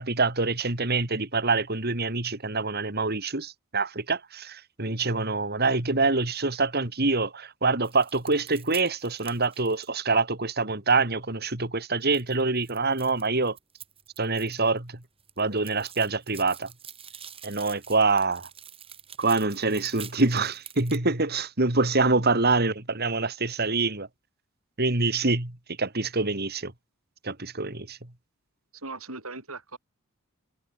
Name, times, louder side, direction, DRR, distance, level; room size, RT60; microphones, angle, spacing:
voice 1, 0.0-13.6 14.2-15.0 15.4-16.7 17.4-18.5 19.2-24.1 24.8-26.7 27.2-28.0, right 3 dB, 50° right, 3.0 m, -25 dB
sound 1, 7.8-10.2 12.1-14.8 15.0-21.0, right 7 dB, 25° right, 5.6 m, -46 dB
voice 2, 28.7-29.8, right 3 dB, 80° right, 7.0 m, -39 dB
head